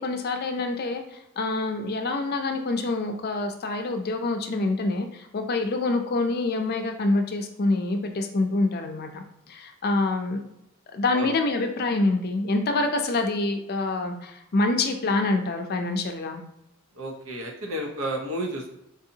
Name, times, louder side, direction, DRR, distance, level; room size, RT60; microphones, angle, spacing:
voice 1, 0.0-10.4 10.9-16.4, left 2 dB, 50° left, 5 dB, 0.5 m, -26 dB
voice 2, 17.0-18.7, right 1 dB, 80° right, 1 dB, 0.8 m, -31 dB
4.0 x 2.7 x 2.7 m, 0.84 s
head